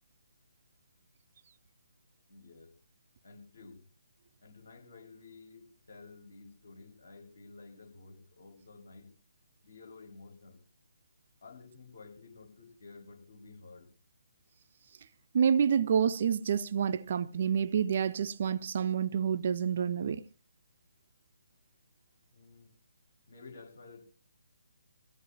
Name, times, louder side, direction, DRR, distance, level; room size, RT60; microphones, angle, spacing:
voice 1, 2.3-2.7 3.2-3.8 4.4-9.1 9.6-10.6 11.4-13.9 22.3-22.7 23.3-24.0, left 3 dB, 60° left, 6.3 m, -52 dB
voice 2, 15.3-20.2, right 7 dB, 40° right, 0.7 m, -28 dB
23.0 x 16.5 x 3.0 m
figure-of-eight pair, 140°, 0 cm